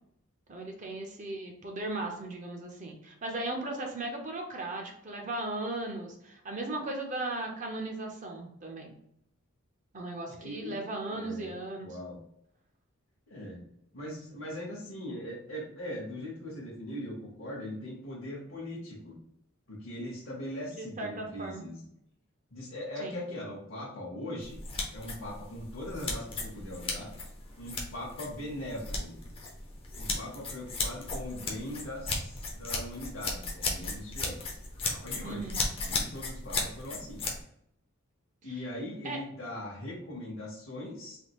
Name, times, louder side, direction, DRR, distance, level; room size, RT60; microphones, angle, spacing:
voice 1, 0.5-8.9 9.9-12.0 20.8-21.7 23.0-23.2 35.2-35.6 38.4-38.6 39.0-39.2, right 2 dB, 35° right, 2 dB, 0.5 m, -37 dB
voice 2, 10.2-10.7 11.1-11.5 11.8-12.2 13.3-13.6 13.9-19.2 19.7-21.9 22.5-24.6 24.9-27.1 27.6-29.2 30.0-34.6 34.9-37.3 38.4-41.2, left 1 dB, 60° left, -5 dB, 0.8 m, -40 dB
sound 1, 24.4-37.4, left 3 dB, 25° left, 0.5 m, -36 dB
3.4 x 2.3 x 2.9 m, 0.74 s
head